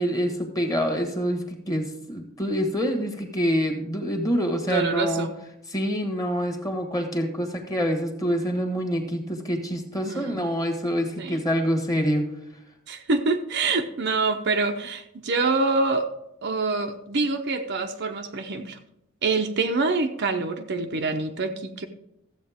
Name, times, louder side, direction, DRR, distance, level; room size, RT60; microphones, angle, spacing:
voice 1, 0.0-5.3 5.7-12.2, equal, 15° left, 4 dB, 1.4 m, -26 dB
voice 2, 4.7-5.3 10.0-10.4 11.2-11.4 12.9-16.1 16.4-18.8 19.2-21.9, right 3 dB, 55° right, 5 dB, 0.7 m, -26 dB
13.5 x 7.9 x 3.5 m, 0.84 s
head